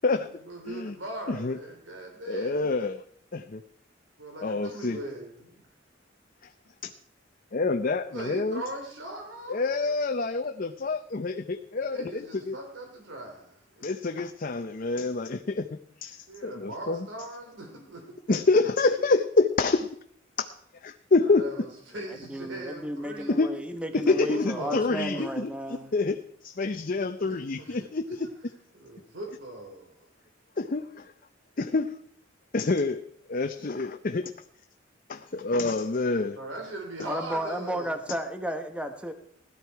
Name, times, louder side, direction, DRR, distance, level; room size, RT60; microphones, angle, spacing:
voice 1, 0.5-2.6 4.2-5.5 8.1-9.6 9.8-9.9 11.9-13.9 16.3-18.2 21.2-23.4 23.9-25.2 27.2-27.9 28.2-28.3 28.7-30.1 36.4-37.9, right 1 dB, 90° right, 2 dB, 3.0 m, -40 dB
voice 2, 1.3-1.6 2.3-3.0 3.3-3.6 4.4-5.0 6.4-6.5 6.8-6.9 7.5-8.6 9.5-12.6 13.8-15.7 16.0-17.1 18.3-19.9 20.4-20.5 20.8-21.4 23.3-23.5 23.9-28.3 30.6-31.1 31.6-32.0 32.5-33.0 33.3-34.3 35.1-36.4, left 3 dB, 45° left, 7 dB, 0.6 m, -27 dB
voice 3, 22.1-25.9 37.0-39.1, equal, 5° right, 7 dB, 1.1 m, -33 dB
17.0 x 12.5 x 4.7 m, 0.64 s
head